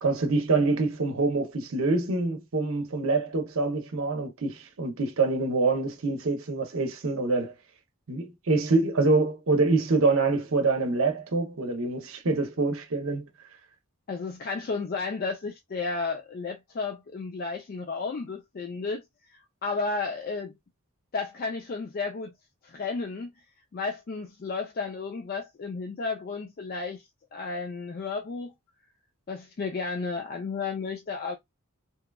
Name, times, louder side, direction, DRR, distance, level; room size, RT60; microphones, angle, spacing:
voice 1, 0.0-7.5 8.1-13.2, right 3 dB, 65° right, 0.7 m, -25 dB
voice 2, 14.1-19.0 19.3-20.5 21.1-22.3 22.6-23.3 23.7-27.0 27.3-28.5 29.3-31.4, left 4 dB, 40° left, 0.4 m, -33 dB
2.9 x 2.2 x 2.2 m
head